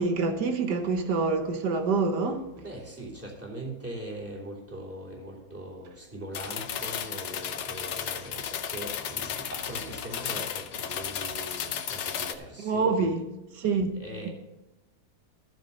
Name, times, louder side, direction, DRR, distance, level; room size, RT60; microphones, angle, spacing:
voice 1, 0.0-2.5 12.6-13.2 13.6-13.9, right 4 dB, 85° right, 1.8 m, -26 dB
voice 2, 2.5-13.2 13.6-14.3, right 1 dB, 10° right, 3.1 m, -41 dB
sound 1, 6.3-12.3, left 8 dB, 75° left, 1.3 m, -34 dB
12.5 x 7.1 x 5.4 m
omnidirectional pair, 1.8 m